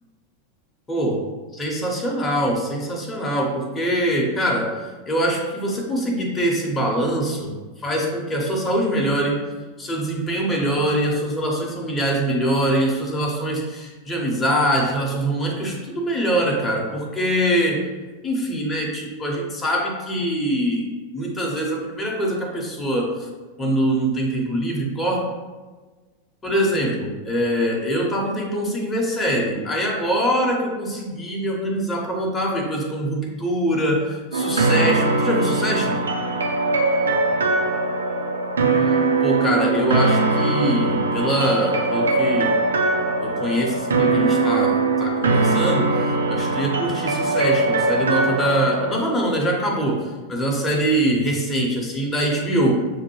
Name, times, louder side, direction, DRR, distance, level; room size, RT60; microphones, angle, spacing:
voice 1, 0.9-1.2 1.5-4.8 5.1-9.5 9.8-17.9 18.2-20.9 21.1-23.3 23.6-25.2 26.4-36.0 38.9-42.6 43.2-46.0 46.3-52.7, right 1 dB, 15° left, -2 dB, 0.8 m, -23 dB
sound 1, 34.3-49.0, right 3 dB, 70° right, 0.4 m, -21 dB
6.5 x 2.2 x 3.0 m, 1.3 s
figure-of-eight pair, 90°, 0 cm